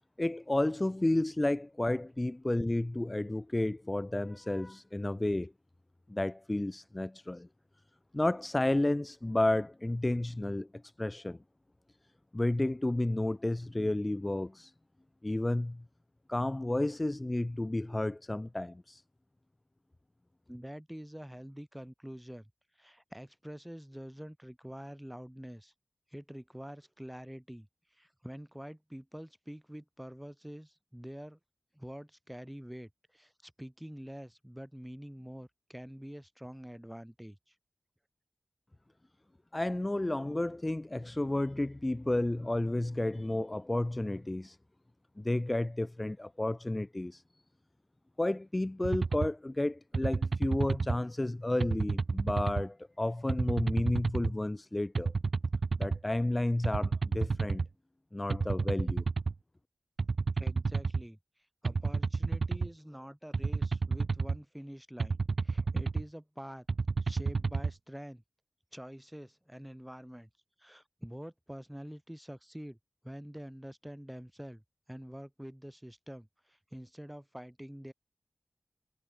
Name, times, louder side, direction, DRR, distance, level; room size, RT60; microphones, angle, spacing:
voice 1, 0.2-5.5 6.1-7.5 8.1-11.4 12.3-14.7 15.2-15.8 16.3-19.0 39.5-44.6 45.2-47.2 48.2-55.1 55.8-57.6 58.1-59.0, left 1 dB, 25° left, 0.4 m, -31 dB
voice 2, 20.5-22.5 22.8-25.7 26.1-27.7 27.9-31.4 31.7-37.5 60.4-61.2 61.6-66.7 67.0-68.2 68.7-70.3 70.6-72.8 73.0-74.6 74.9-77.9, equal, 5° right, 4.5 m, -46 dB
sound 1, 48.8-49.3 49.9-51.0 51.6-52.6 53.3-54.3 54.9-56.0 56.6-57.7 58.3-59.3 60.0-61.0 61.6-62.7 63.3-64.4 65.0-66.0 66.7-67.7, right 4 dB, 80° right, 0.4 m, -30 dB
wide cardioid pair, 80°, 0 cm